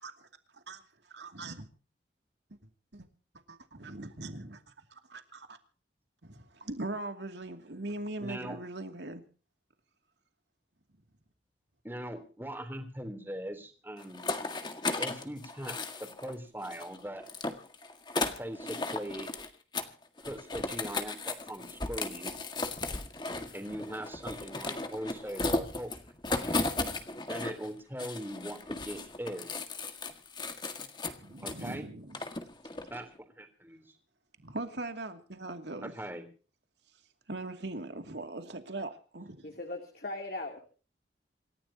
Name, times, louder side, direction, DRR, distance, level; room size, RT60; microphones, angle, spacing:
voice 1, 0.0-1.7 2.5-2.6 2.9-3.1 3.5-5.6 6.2-9.2 31.1-32.5 34.4-35.9 37.3-39.5, right 2 dB, 80° right, 2.5 m, -41 dB
voice 2, 8.2-8.6 11.8-14.2 15.0-17.2 18.1-19.3 20.2-22.3 23.5-26.6 27.3-29.5 30.7-31.1 31.4-31.9 32.9-34.0 35.8-36.2, equal, 10° right, 3.4 m, -41 dB
sound 1, 14.0-16.3 16.6-19.5 19.7-19.9 20.2-27.7 28.0-31.7 32.1-33.0, left 3 dB, 25° left, 1.8 m, -36 dB
voice 3, 39.4-40.6, left 2 dB, 55° left, 3.0 m, -39 dB
27.5 x 14.5 x 2.9 m
head